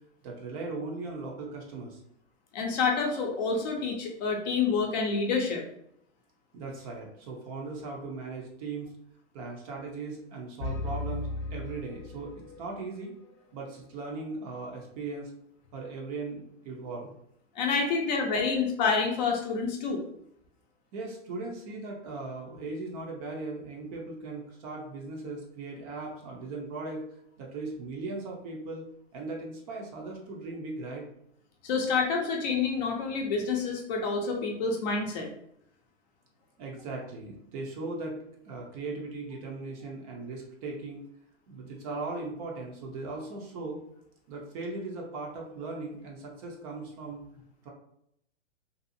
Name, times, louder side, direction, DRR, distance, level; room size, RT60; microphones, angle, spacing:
voice 1, 0.2-2.0 6.5-8.9 9.3-13.1 13.5-15.3 15.7-17.1 20.9-28.9 29.1-31.0 36.6-38.2 38.4-41.0 41.5-43.8 44.3-47.2 47.6-47.7, right 3 dB, 35° right, 0 dB, 0.5 m, -38 dB
voice 2, 2.5-5.6 17.6-20.0 31.6-35.3, left 4 dB, 40° left, 1 dB, 0.5 m, -28 dB
sound 1, 10.6-12.7, left 2 dB, 85° left, 0.5 m, -35 dB
2.6 x 2.3 x 2.6 m, 0.73 s
hypercardioid pair, 135°, 35 cm